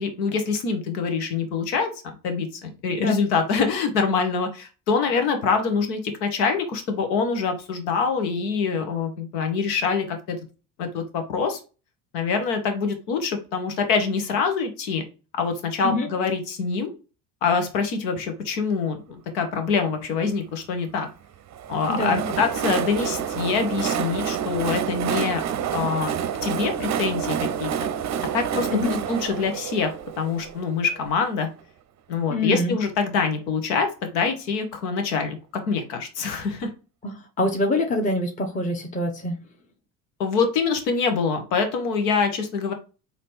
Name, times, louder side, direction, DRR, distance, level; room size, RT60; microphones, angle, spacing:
voice 1, 0.0-1.9 2.2-10.4 10.8-11.6 12.1-15.0 15.4-16.9 17.4-21.1 21.7-25.4 25.7-26.1 26.4-27.7 28.3-31.5 32.1-35.4 35.7-36.7 40.2-42.7, left 5 dB, 80° left, 1.2 m, -25 dB
Train, 21.5-31.2, right 8 dB, 35° right, 0.6 m, -28 dB
voice 2, 21.9-22.2 28.7-28.9 32.3-32.8 37.0-39.4, left 1 dB, 15° left, 0.8 m, -25 dB
4.1 x 2.9 x 3.3 m
hypercardioid pair, 70°, 50 cm